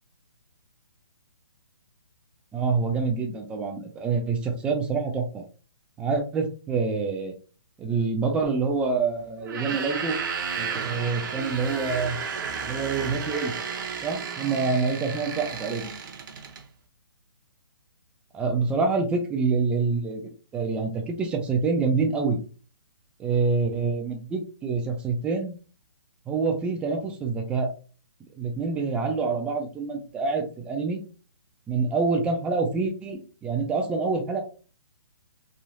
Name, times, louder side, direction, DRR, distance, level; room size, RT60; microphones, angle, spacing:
voice 1, 2.5-5.4 6.0-7.3 7.8-10.2 10.6-12.2 12.6-13.5 14.0-15.9 18.3-22.4 23.2-25.5 26.3-27.7 28.4-31.0 31.7-34.4, right 4 dB, 10° right, 3 dB, 0.4 m, -26 dB
sound 1, 9.4-16.6, right 6 dB, 50° right, 0.6 m, -33 dB
3.1 x 2.3 x 2.6 m, 0.36 s
hypercardioid pair, 150°, 13 cm